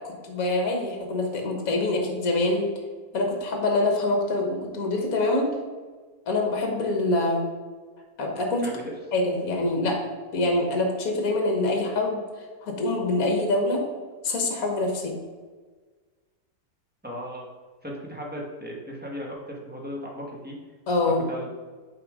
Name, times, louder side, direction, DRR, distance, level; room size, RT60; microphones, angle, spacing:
voice 1, 0.2-2.7 3.1-5.5 6.3-7.4 8.2-8.7 9.1-10.0 10.3-12.2 12.6-13.8 14.2-15.2 20.9-21.3, left 2 dB, 60° left, 2 dB, 1.5 m, -25 dB
voice 2, 8.6-8.9 17.0-17.5 17.8-20.5 21.3-21.5, equal, 5° right, -2 dB, 0.9 m, -36 dB
7.8 x 3.5 x 4.8 m, 1.4 s
omnidirectional pair, 1.8 m